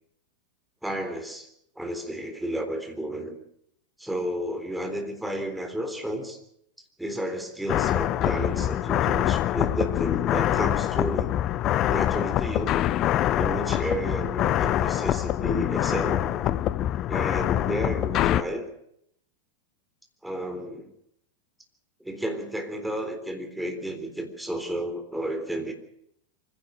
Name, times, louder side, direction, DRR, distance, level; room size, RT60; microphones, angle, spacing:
voice 1, 0.8-1.5 1.8-3.4 4.0-6.4 7.0-11.4 11.9-12.7 13.3-16.6 17.1-18.7 20.2-20.9 22.0-25.7, right 1 dB, 5° right, 5 dB, 3.8 m, -32 dB
sound 1, 7.7-18.4, left 12 dB, 35° left, 0.7 m, -25 dB
24.0 x 16.5 x 6.5 m, 0.73 s
figure-of-eight pair, 90°, 0 cm